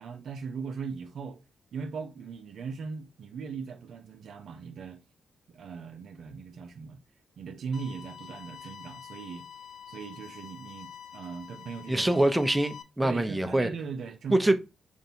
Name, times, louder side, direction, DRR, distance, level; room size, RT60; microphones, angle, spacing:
voice 1, 0.0-1.4 1.7-5.0 5.5-7.0 7.4-9.4 9.9-12.2 13.0-14.5, right 5 dB, 70° right, 0.5 m, -39 dB
sound 1, 7.7-12.8, left 8 dB, 70° left, 0.5 m, -47 dB
voice 2, 11.9-13.7 14.3-14.5, right 1 dB, 10° right, 0.7 m, -24 dB
5.1 x 2.5 x 2.8 m
supercardioid pair, 45°, 0 cm